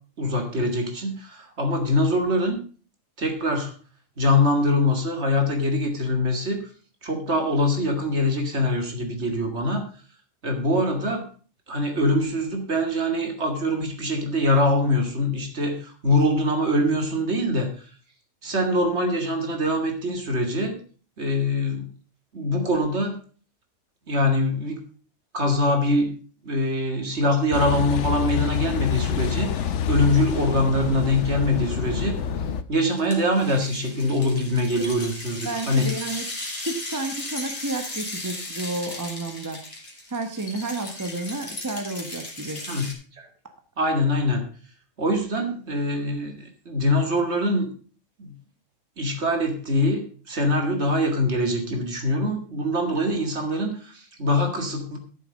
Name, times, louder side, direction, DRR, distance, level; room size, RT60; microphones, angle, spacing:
voice 1, 0.2-2.6 3.2-3.7 4.2-6.6 7.0-9.8 10.4-11.3 11.7-17.7 18.4-20.8 21.2-21.9 22.3-23.2 24.1-24.8 25.3-26.1 26.5-32.2 32.7-35.9 42.7-42.8 43.2-43.3 43.8-44.4 45.0-47.7 48.2-48.3 49.0-50.0 50.3-55.0, left 1 dB, 55° right, 4 dB, 2.4 m, -23 dB
Car passing by / Idling / Accelerating revving vroom, 27.5-32.6, left 8 dB, 65° left, 1.0 m, -27 dB
sound 1, 32.8-42.9, left 2 dB, 40° left, 2.9 m, -36 dB
voice 2, 35.4-36.3 36.6-39.6 40.1-42.6, right 2 dB, 15° right, 6 dB, 1.0 m, -31 dB
12.5 x 6.9 x 5.3 m, 0.40 s
omnidirectional pair, 1.4 m